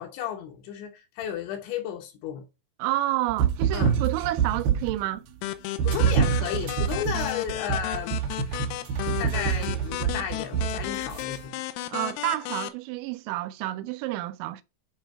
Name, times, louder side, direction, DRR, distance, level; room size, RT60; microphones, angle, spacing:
voice 1, 0.0-2.4 3.7-3.9 5.8-8.2 8.4-8.6 9.1-11.6, left 9 dB, 75° left, 3.0 m, -34 dB
voice 2, 2.8-5.2 11.9-14.6, right 16 dB, 90° right, 2.6 m, -29 dB
sound 1, 3.3-5.1 5.8-11.2, right 7 dB, 70° right, 2.5 m, -26 dB
sound 2, 5.4-12.7, left 14 dB, 90° left, 3.5 m, -34 dB
9.0 x 4.8 x 4.4 m
omnidirectional pair, 5.8 m